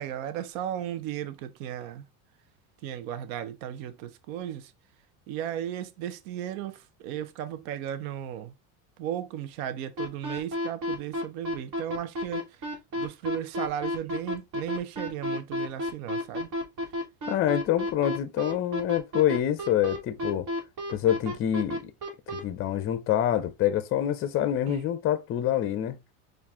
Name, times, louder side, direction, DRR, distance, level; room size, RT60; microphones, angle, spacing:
voice 1, 0.0-2.0 2.8-4.7 5.3-8.5 9.0-16.5 24.7-24.8, right 10 dB, 70° right, 0.7 m, -35 dB
sound 1, 10.0-22.4, equal, 45° right, 1.6 m, -31 dB
voice 2, 17.3-20.5 20.9-21.9 22.3-26.0, left 11 dB, 30° left, 0.5 m, -26 dB
4.6 x 2.6 x 3.5 m
supercardioid pair, 115°, 44 cm